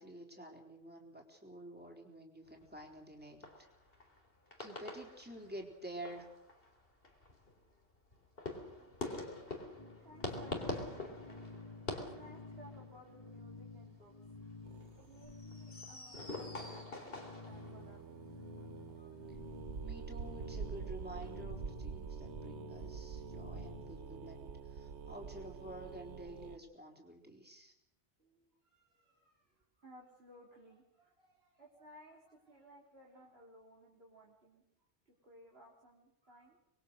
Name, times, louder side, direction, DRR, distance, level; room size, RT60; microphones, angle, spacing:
voice 1, 0.0-3.7 4.6-6.3 19.3-19.4 19.8-27.7, right 1 dB, 10° right, 1 dB, 3.9 m, -50 dB
sound 1, 2.5-4.3 4.5-5.7 6.0-21.4, left 2 dB, 60° left, 3.9 m, -46 dB
voice 2, 9.1-9.7 10.0-11.5 11.9-14.3 14.6-18.1 28.2-34.6 35.1-36.6, equal, 65° right, -2 dB, 3.7 m, -60 dB
sound 2, 9.8-24.3, left 4 dB, 30° left, 2.7 m, -52 dB
sound 3, 14.6-15.3 17.5-26.6, right 6 dB, 90° right, 1.3 m, -46 dB
26.0 x 21.5 x 6.5 m, 0.81 s
omnidirectional pair, 1.1 m